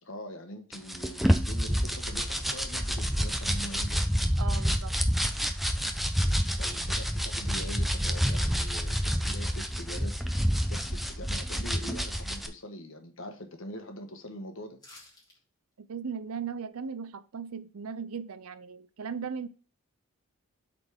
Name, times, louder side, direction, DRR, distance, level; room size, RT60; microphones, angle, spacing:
voice 1, 0.0-4.0 6.6-14.8, equal, 65° left, 1.3 m, -43 dB
sound 1, 0.7-12.5, equal, ahead, 0.6 m, -28 dB
voice 2, 4.4-5.0 15.8-19.5, right 6 dB, 85° right, 0.6 m, -37 dB
sound 2, 14.8-15.4 15.7-15.8, left 2 dB, 20° left, 2.5 m, -52 dB
7.9 x 4.2 x 3.6 m
head